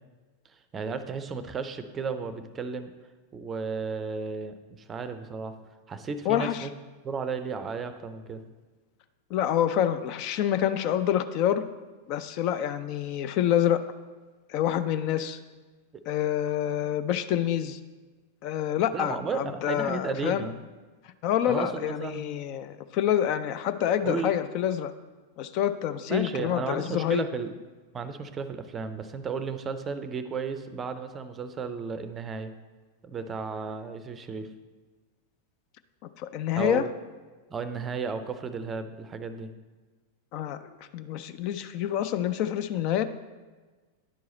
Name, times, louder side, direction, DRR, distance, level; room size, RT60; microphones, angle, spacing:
voice 1, 0.7-2.9 3.3-5.6 5.9-6.7 7.0-8.4 18.9-20.6 21.5-22.3 24.0-24.3 26.1-27.5 27.9-32.5 33.0-34.5 36.5-36.9 37.5-39.5, right 5 dB, 20° right, 11 dB, 0.5 m, -34 dB
voice 2, 6.3-6.7 9.3-11.6 12.1-13.8 14.5-15.4 16.1-17.8 18.4-20.5 21.2-24.9 25.4-27.2 36.2-36.8 40.3-40.6 40.9-43.0, left 10 dB, 40° left, 11 dB, 0.3 m, -27 dB
10.0 x 4.7 x 4.0 m, 1.3 s
figure-of-eight pair, 90°, 0 cm